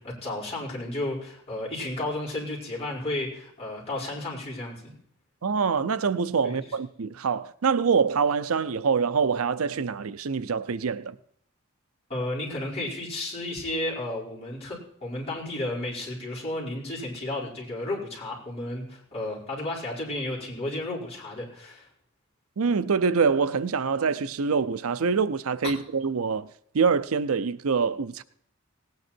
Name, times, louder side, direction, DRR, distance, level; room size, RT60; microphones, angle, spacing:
voice 1, 0.0-4.9 6.4-6.6 12.1-21.9, left 1 dB, 30° left, 5.1 m, -33 dB
voice 2, 5.4-11.1 22.6-26.5 26.7-28.2, right 5 dB, 80° right, 0.6 m, -25 dB
18.5 x 9.5 x 4.4 m
head